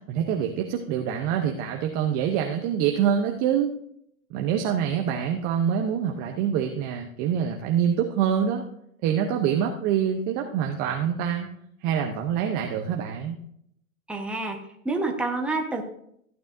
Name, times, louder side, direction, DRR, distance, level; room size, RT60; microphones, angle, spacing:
voice 1, 0.1-3.7 4.3-8.6 9.0-11.5 11.8-13.4, right 8 dB, 20° right, 3 dB, 0.6 m, -25 dB
voice 2, 14.1-14.6 14.8-15.8, right 3 dB, 5° right, 1 dB, 1.0 m, -27 dB
15.0 x 8.9 x 2.6 m, 0.70 s
hypercardioid pair, 135°, 43 cm